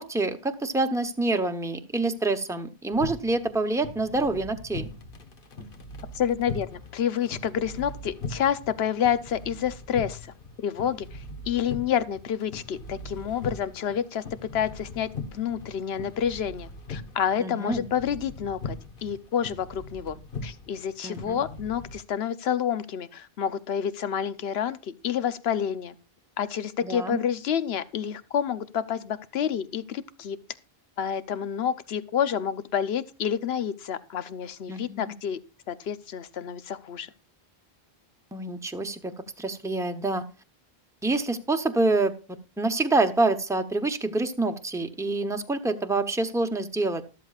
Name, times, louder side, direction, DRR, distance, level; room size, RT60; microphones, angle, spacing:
voice 1, 0.0-4.9 17.4-17.8 21.0-21.4 26.8-27.2 34.7-35.1 38.3-40.2 41.0-42.1 42.6-47.0, right 2 dB, 5° right, 6 dB, 0.8 m, -27 dB
sound 1, 2.9-22.0, left 2 dB, 60° left, 1.3 m, -40 dB
voice 2, 6.1-10.2 10.6-11.2 11.5-14.2 14.5-18.8 19.0-25.9 26.4-30.4 31.0-35.4 35.7-37.1, left 9 dB, 80° left, 14 dB, 1.0 m, -29 dB
13.5 x 12.5 x 2.4 m, 0.31 s
omnidirectional pair, 1.0 m